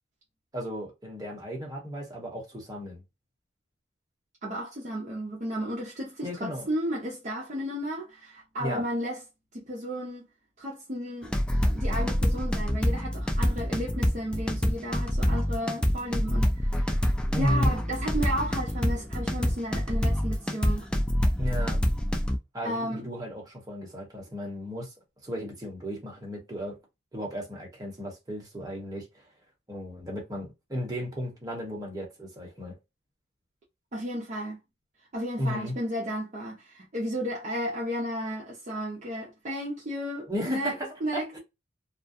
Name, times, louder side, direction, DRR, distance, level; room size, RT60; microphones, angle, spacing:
voice 1, 0.5-3.0 6.2-6.7 8.6-8.8 17.3-17.7 21.4-21.8 22.5-24.9 25.2-26.8 27.1-29.2 29.7-32.8 35.4-35.8 40.3-41.4, equal, 20° right, 1.0 m, -34 dB
voice 2, 4.4-9.2 9.5-10.3 10.6-11.3 11.7-17.0 17.4-20.9 22.6-23.1 33.9-34.6 35.1-41.4, equal, 40° right, 0.6 m, -33 dB
sound 1, 11.2-22.4, equal, 5° left, 0.3 m, -26 dB
2.3 x 2.2 x 2.6 m
head